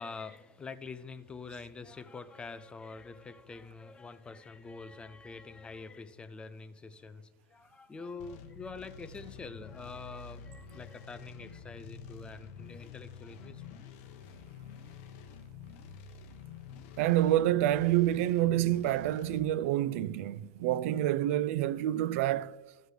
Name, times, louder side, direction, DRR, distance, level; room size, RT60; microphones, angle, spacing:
voice 1, 0.0-13.8, left 4 dB, 10° left, 0.4 m, -45 dB
sound 1, 8.2-19.4, left 6 dB, 55° left, 0.9 m, -49 dB
voice 2, 17.0-22.6, right 13 dB, 65° right, 0.4 m, -28 dB
15.5 x 6.4 x 3.3 m
supercardioid pair, 155°, 8 cm